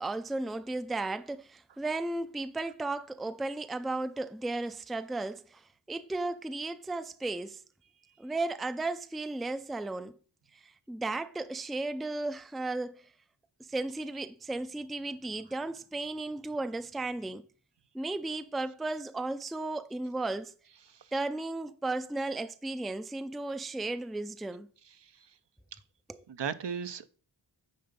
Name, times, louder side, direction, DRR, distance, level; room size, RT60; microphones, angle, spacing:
voice 1, 0.0-7.6 8.2-10.2 10.5-13.1 13.6-17.4 17.9-20.6 21.1-24.7 26.1-26.2, right 2 dB, ahead, 0.4 m, -35 dB
voice 2, 24.9-25.3 26.3-27.1, right 7 dB, 65° right, 0.7 m, -37 dB
9.4 x 3.9 x 5.2 m
wide cardioid pair, 60°, 46 cm